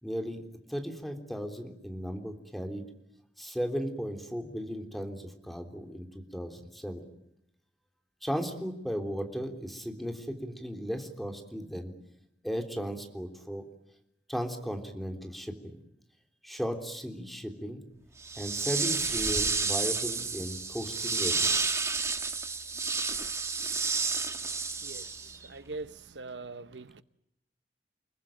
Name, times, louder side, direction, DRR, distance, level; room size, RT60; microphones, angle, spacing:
voice 1, 0.0-2.8 3.4-7.0 8.2-11.9 12.4-13.6 14.3-15.8 16.4-17.9 18.4-21.9, equal, ahead, 3.4 m, -36 dB
sound 1, 18.2-25.5, right 4 dB, 15° right, 1.5 m, -30 dB
voice 2, 25.5-27.0, right 3 dB, 85° right, 1.0 m, -42 dB
29.5 x 20.5 x 9.1 m
head